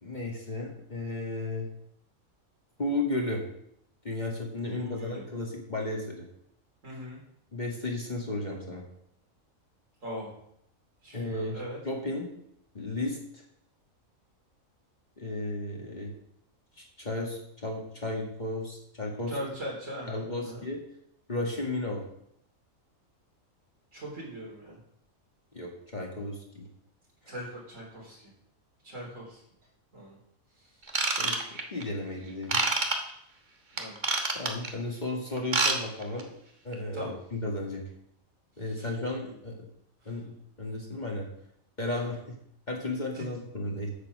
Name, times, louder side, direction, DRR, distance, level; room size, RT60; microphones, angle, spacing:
voice 1, 0.0-1.7 2.8-3.4 4.0-6.3 7.5-8.8 11.1-12.3 12.7-13.4 15.2-16.1 16.8-19.4 20.1-20.8 21.3-22.0 25.5-26.7 31.2-32.6 34.3-36.3 36.6-37.8 38.6-39.7 40.1-41.3 41.8-42.2 42.7-43.9, left 2 dB, 35° left, -1 dB, 1.9 m, -34 dB
voice 2, 4.8-5.2 6.8-7.2 10.0-10.3 11.0-11.8 19.3-20.6 23.9-24.8 27.3-28.2 28.8-29.4 29.9-30.2 33.7-34.0 36.9-37.1 38.7-38.9 40.0-40.2 43.1-43.2, equal, 65° right, -3 dB, 3.9 m, -40 dB
Ratchet pawl / Tools, 30.9-31.8 32.5-33.0 33.8-34.7 35.4-35.8 36.0-36.2 36.7-36.8, right 3 dB, 35° right, 1.2 m, -26 dB
8.7 x 7.4 x 6.1 m, 0.73 s
omnidirectional pair, 1.4 m